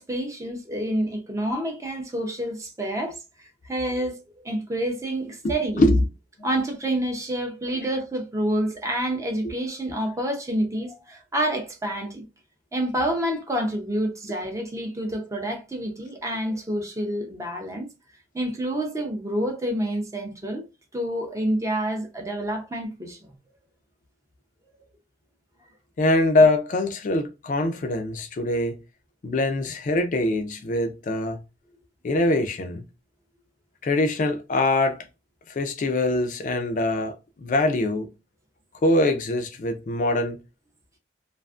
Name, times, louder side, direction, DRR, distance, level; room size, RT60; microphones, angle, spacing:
voice 1, 0.0-5.9 6.4-12.3 12.7-17.9 18.3-20.6 20.9-23.3, right 1 dB, 15° right, 0.5 m, -28 dB
voice 2, 5.4-6.0 26.0-28.8 29.2-31.4 32.0-32.8 33.8-35.1 35.5-38.1 38.8-40.4, left 2 dB, 45° left, 0.4 m, -23 dB
2.4 x 2.4 x 2.3 m
head